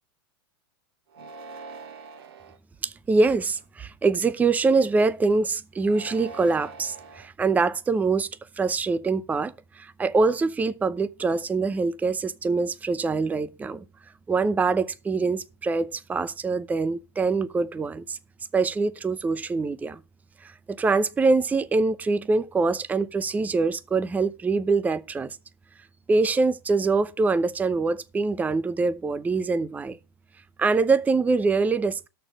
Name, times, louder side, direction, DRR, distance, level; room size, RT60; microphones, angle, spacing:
sound 1, 1.1-2.6 3.3-3.8 5.8-7.3, right 3 dB, 75° right, 1.7 m, -43 dB
voice 1, 2.8-8.3 8.6-13.8 14.3-18.2 18.5-20.0 20.4-25.4 26.1-30.0 30.6-32.1, right 4 dB, 10° right, 0.7 m, -24 dB
13.0 x 4.5 x 6.2 m
hypercardioid pair, 120°, 13 cm